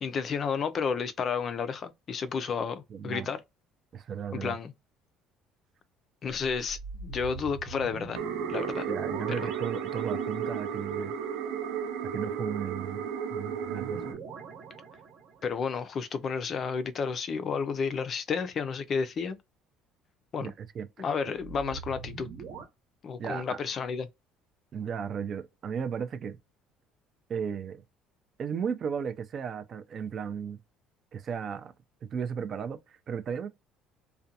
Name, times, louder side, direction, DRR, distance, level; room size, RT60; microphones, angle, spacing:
voice 1, 0.0-3.4 4.3-4.7 6.2-8.2 8.5-8.9 9.3-9.5 15.4-19.4 20.3-20.5 21.0-22.3 23.0-24.1, left 6 dB, 35° left, 0.4 m, -31 dB
voice 2, 2.9-3.3 3.9-4.6 8.9-11.1 12.1-14.2 20.4-20.9 23.2-23.6 24.7-26.4 27.3-27.8 28.4-30.6 31.1-31.7 32.0-33.5, right 7 dB, 35° right, 0.4 m, -35 dB
sound 1, 6.4-10.8 13.6-15.7 21.3-22.6, right 5 dB, 55° right, 0.9 m, -43 dB
sound 2, 8.1-14.1, right 7 dB, 90° right, 0.7 m, -33 dB
2.4 x 2.1 x 2.7 m
cardioid pair, 145°, 0 cm